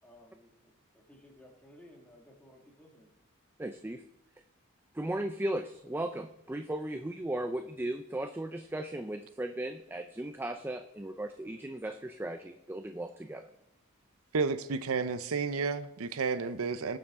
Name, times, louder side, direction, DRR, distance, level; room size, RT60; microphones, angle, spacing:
voice 1, 0.0-3.1, left 1 dB, 5° left, 2.0 m, -57 dB
voice 2, 3.6-4.0 4.9-13.5, right 1 dB, 10° right, 0.4 m, -36 dB
voice 3, 14.3-17.0, right 4 dB, 80° right, 0.6 m, -31 dB
18.0 x 7.1 x 3.7 m
head